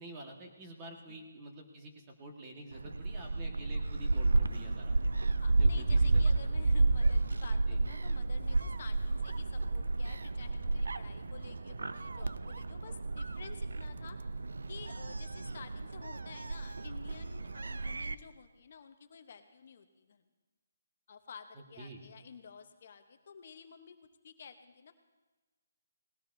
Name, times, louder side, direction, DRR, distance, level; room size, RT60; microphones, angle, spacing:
voice 1, 0.0-5.0 5.5-6.2 7.7-7.8 21.8-22.0, right 2 dB, 20° right, 1 dB, 1.5 m, -48 dB
Gull seagull, 2.7-18.1, right 2 dB, 90° right, 0.5 m, -31 dB
voice 2, 5.4-14.2 14.7-20.3 21.1-24.0 24.2-24.9, left 6 dB, 45° left, 8 dB, 0.9 m, -52 dB
19.0 x 17.5 x 2.7 m, 1.2 s
hypercardioid pair, 170°, 0 cm